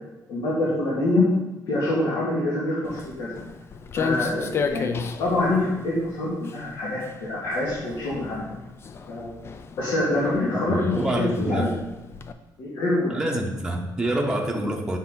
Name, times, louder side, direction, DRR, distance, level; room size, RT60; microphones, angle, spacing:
voice 1, 0.3-1.2 1.7-3.3 3.9-8.5 9.1-9.3 9.8-11.7 12.6-13.4, left 2 dB, 80° left, -7 dB, 2.1 m, -25 dB
Walk footsteps, 2.8-12.3, left 5 dB, 35° left, 0.4 m, -34 dB
voice 2, 10.5-11.7 13.1-15.0, right 1 dB, 10° right, 0 dB, 0.8 m, -26 dB
8.3 x 5.6 x 3.8 m, 1.0 s
cardioid pair, 155°, 7 cm